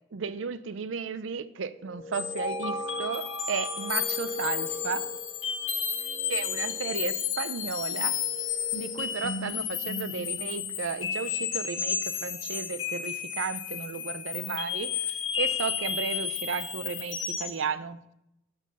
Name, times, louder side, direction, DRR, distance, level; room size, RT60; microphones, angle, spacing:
voice 1, 0.1-5.1 6.3-8.1 8.7-18.0, right 6 dB, 85° right, 15 dB, 0.5 m, -34 dB
sound 1, 1.7-9.5, left 1 dB, 55° left, 0.6 m, -42 dB
sound 2, 2.1-17.6, left 7 dB, 90° left, 0.8 m, -32 dB
12.0 x 4.6 x 5.5 m, 0.84 s
head